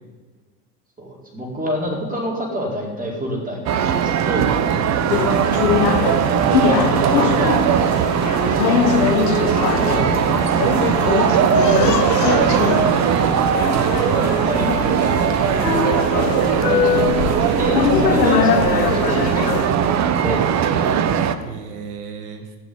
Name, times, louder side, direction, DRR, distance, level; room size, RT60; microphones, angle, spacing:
voice 1, 1.0-4.5 6.3-7.9 8.5-10.1 13.9-15.7 16.2-20.7, equal, 15° right, -1 dB, 4.6 m, -28 dB
sound 1, 3.7-21.4, right 8 dB, 35° right, 1.0 m, -19 dB
voice 2, 4.9-5.4 10.5-10.9 21.4-22.6, right 6 dB, 70° right, 7 dB, 1.6 m, -35 dB
sound 2, 5.1-19.7, left 10 dB, 80° left, 0.8 m, -22 dB
15.5 x 6.3 x 9.5 m, 1.4 s
hypercardioid pair, 90°, 47 cm